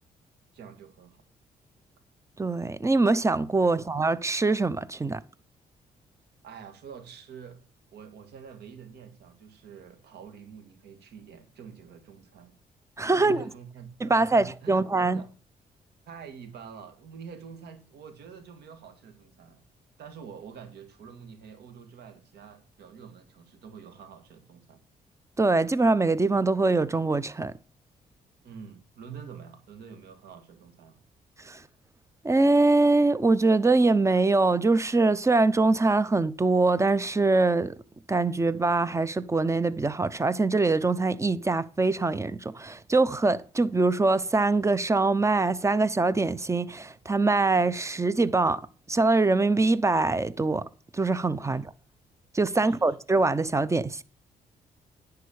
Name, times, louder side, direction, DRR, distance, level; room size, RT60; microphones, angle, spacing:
voice 1, 0.5-1.2 3.6-3.8 6.4-7.6 7.9-12.6 13.1-15.3 16.1-19.6 20.0-24.8 28.4-31.0 51.4-51.6 52.5-52.9, right 7 dB, 80° right, 1.9 m, -46 dB
voice 2, 2.4-5.2 13.0-13.4 14.0-15.2 25.4-27.5 31.4-31.6 32.2-37.8 38.1-48.6 48.9-50.6 50.9-51.7 52.3-54.0, right 3 dB, 15° right, 0.7 m, -23 dB
10.0 x 4.8 x 7.0 m
supercardioid pair, 60°, 17 cm